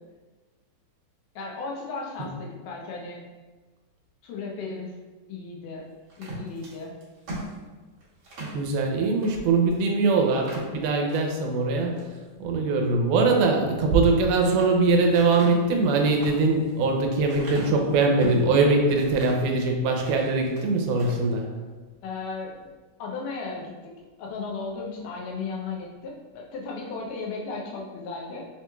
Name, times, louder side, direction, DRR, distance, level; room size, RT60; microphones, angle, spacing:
voice 1, 1.4-3.2 4.2-4.9 5.3-5.8 6.2-6.9 22.0-22.7 23.0-23.9 24.2-28.5, left 4 dB, 85° left, -2 dB, 2.3 m, -35 dB
sound 1, 6.1-8.6 9.2-9.4 9.7-9.8 10.3-11.2 11.7-12.2 14.0-14.7 15.1-18.5 19.0-19.5 19.9-20.7 20.9-21.2, equal, 60° right, 1.4 m, -39 dB
voice 2, 8.4-12.0 12.4-21.5, right 3 dB, 90° right, 2 dB, 2.2 m, -22 dB
5.6 x 3.0 x 2.2 m, 1.3 s
omnidirectional pair, 3.6 m